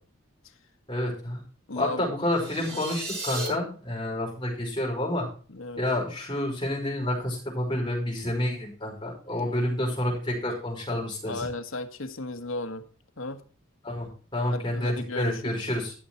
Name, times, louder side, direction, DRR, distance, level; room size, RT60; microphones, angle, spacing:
voice 1, 0.9-1.4 1.7-5.3 5.8-11.4 13.8-15.9, left 1 dB, 20° left, 4.9 m, -29 dB
voice 2, 1.7-2.1 2.7-2.9 5.5-5.8 9.4-9.5 11.3-12.9 13.2-13.4 14.5-15.6, left 2 dB, 75° left, 1.4 m, -35 dB
sound 1, 2.3-3.5, right 2 dB, 30° right, 4.4 m, -35 dB
12.0 x 7.1 x 4.4 m
head